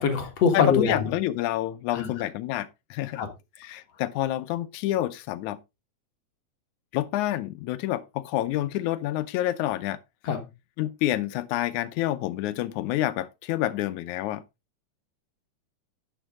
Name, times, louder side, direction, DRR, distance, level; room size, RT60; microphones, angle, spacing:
voice 1, 0.0-1.1 1.9-2.3 3.1-3.3 10.2-10.5, left 6 dB, 60° left, 2.6 m, -24 dB
voice 2, 0.5-3.2 3.6-5.6 6.9-10.0 10.8-14.4, left 14 dB, 80° left, 2.2 m, -28 dB
10.5 x 7.4 x 3.6 m
omnidirectional pair, 3.4 m